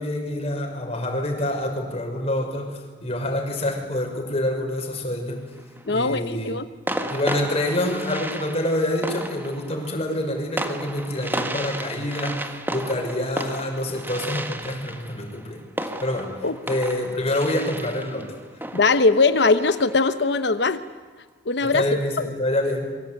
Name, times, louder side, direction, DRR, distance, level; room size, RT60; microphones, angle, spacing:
voice 1, 0.0-5.4 5.9-6.5 7.1-15.6 16.0-16.3 16.6-18.3 21.6-22.9, left 1 dB, 35° left, 2 dB, 5.8 m, -26 dB
sound 1, 5.6-6.0 6.9-20.3, right 1 dB, 10° right, 1.6 m, -33 dB
voice 2, 5.9-6.7 16.4-16.5 18.7-20.8 21.5-22.3, left 3 dB, 65° left, 11 dB, 0.9 m, -20 dB
27.5 x 23.5 x 9.1 m, 1.4 s
head